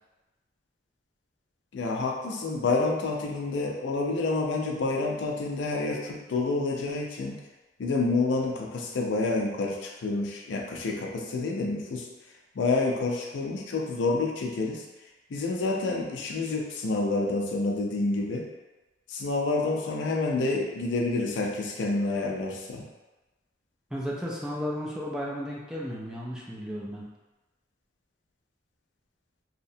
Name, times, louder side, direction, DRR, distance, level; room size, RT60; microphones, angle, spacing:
voice 1, 1.7-7.4 7.8-12.1 12.6-14.8 15.3-18.5 19.1-22.9, left 3 dB, 75° left, 0 dB, 0.4 m, -28 dB
voice 2, 23.9-27.1, equal, 5° right, -5 dB, 0.4 m, -34 dB
2.8 x 2.1 x 2.6 m, 1.1 s
head